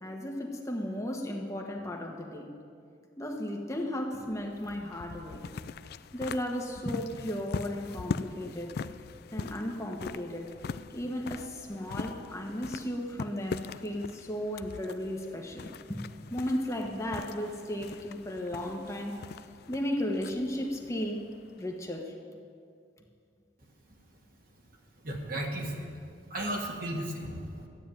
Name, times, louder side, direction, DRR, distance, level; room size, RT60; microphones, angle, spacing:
voice 1, 0.0-2.5 3.2-5.5 6.1-8.8 9.3-10.5 10.9-16.0 16.3-19.2 19.7-21.2 21.6-22.1, left 1 dB, 15° left, 1 dB, 1.3 m, -35 dB
sound 1, 4.3-21.9, left 5 dB, 55° left, 0.3 m, -42 dB
voice 2, 25.0-25.9 26.3-27.7, right 1 dB, 50° right, 0 dB, 2.0 m, -34 dB
13.0 x 9.2 x 9.0 m, 2.3 s
head